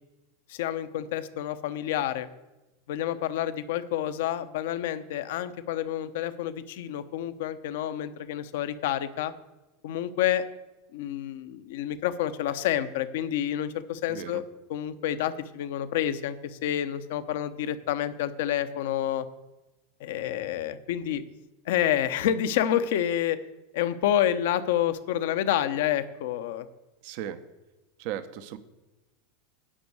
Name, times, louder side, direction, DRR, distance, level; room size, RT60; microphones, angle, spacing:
voice 1, 0.5-2.3 2.9-9.3 9.8-10.5 10.9-14.4 14.7-19.3 20.0-21.2 21.7-23.4 23.7-26.7, left 11 dB, 65° left, 11 dB, 0.9 m, -28 dB
voice 2, 14.1-14.4 27.0-27.4 28.0-28.6, right 10 dB, 60° right, 11 dB, 0.9 m, -36 dB
10.0 x 6.1 x 8.1 m, 1.0 s
hypercardioid pair, 90°, 0 cm